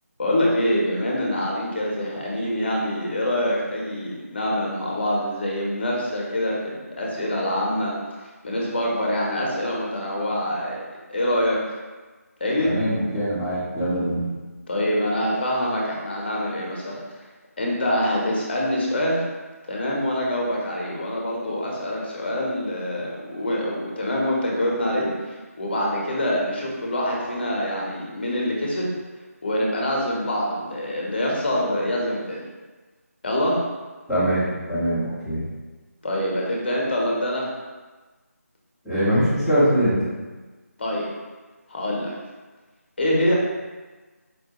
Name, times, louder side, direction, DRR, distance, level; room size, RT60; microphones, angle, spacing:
voice 1, 0.2-7.9 8.4-10.8 11.1-11.6 12.4-12.7 14.7-17.0 17.6-19.2 19.6-28.9 29.4-32.5 33.2-33.6 36.0-37.5 40.8-41.0 41.7-42.1 43.0-43.4, left 1 dB, 40° left, -3 dB, 0.7 m, -25 dB
voice 2, 12.6-14.3 34.1-35.5 38.8-40.0, equal, ahead, -17 dB, 0.6 m, -22 dB
4.4 x 2.1 x 2.8 m, 1.3 s
figure-of-eight pair, 160°, 8 cm